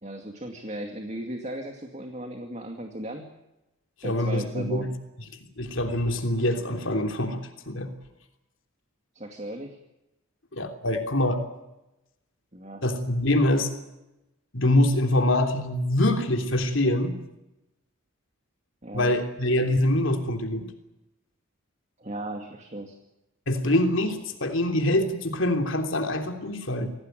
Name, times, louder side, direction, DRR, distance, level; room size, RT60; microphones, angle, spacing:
voice 1, 0.0-3.3 4.0-4.9 9.1-9.8 12.5-12.8 18.8-19.1 22.0-23.0, right 1 dB, 30° right, 4 dB, 2.3 m, -36 dB
voice 2, 4.0-4.9 5.6-7.9 10.5-11.4 12.8-13.7 14.5-17.2 18.9-20.7 23.5-26.9, left 1 dB, 65° left, 5 dB, 3.3 m, -24 dB
26.0 x 17.5 x 9.2 m, 0.94 s
head